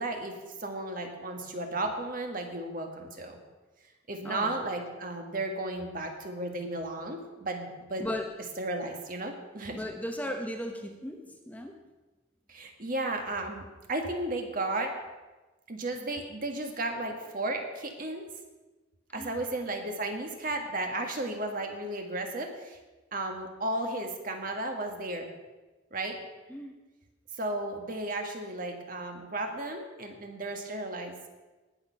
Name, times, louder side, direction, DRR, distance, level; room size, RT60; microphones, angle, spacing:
voice 1, 0.0-3.4 4.1-8.1 8.6-9.8 12.5-14.9 15.7-18.2 19.1-22.8 23.1-25.3 25.9-26.2 27.4-31.2, right 2 dB, 45° right, 3 dB, 1.7 m, -34 dB
voice 2, 4.2-4.6 8.0-8.3 9.7-11.8 19.2-19.4 26.5-26.7, equal, 10° left, 4 dB, 0.8 m, -36 dB
18.5 x 6.5 x 5.8 m, 1.2 s
head